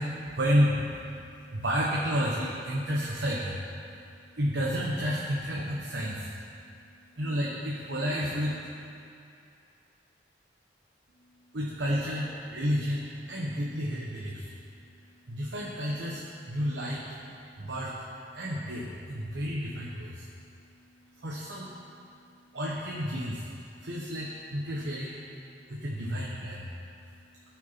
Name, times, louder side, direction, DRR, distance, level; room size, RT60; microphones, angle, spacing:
voice 1, 0.0-3.6 4.0-6.3 7.2-8.6 11.5-14.5 15.3-17.1 17.6-18.1 18.3-20.3 21.2-21.7 22.5-23.5 23.8-25.2 25.7-26.7, equal, 85° right, -4 dB, 1.2 m, -31 dB
17.5 x 6.0 x 4.2 m, 2.6 s
head